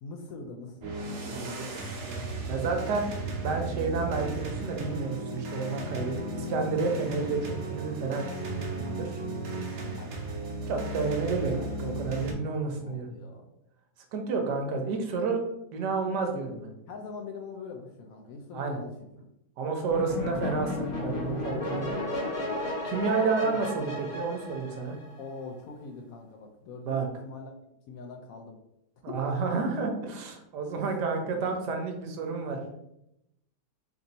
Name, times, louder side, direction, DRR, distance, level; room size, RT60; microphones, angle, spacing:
voice 1, 0.0-2.8 9.9-10.7 12.4-12.6 12.8-13.5 16.9-19.3 23.4-23.7 25.2-27.5 27.9-28.6 29.1-29.6 30.8-30.9, left 4 dB, 70° left, 3 dB, 0.9 m, -44 dB
sound 1, 0.8-12.3, right 2 dB, 65° right, 1.2 m, -35 dB
voice 2, 1.3-2.2 2.5-3.1 3.4-8.3 8.8-9.2 10.7-13.1 14.1-15.4 15.7-16.7 18.5-18.8 19.6-21.9 22.8-25.0 26.9-27.1 29.0-32.6, right 4 dB, 85° right, 3 dB, 1.4 m, -30 dB
sound 2, 19.9-25.4, left 1 dB, 25° left, 0.8 m, -33 dB
3.4 x 2.6 x 4.0 m, 0.83 s
omnidirectional pair, 1.8 m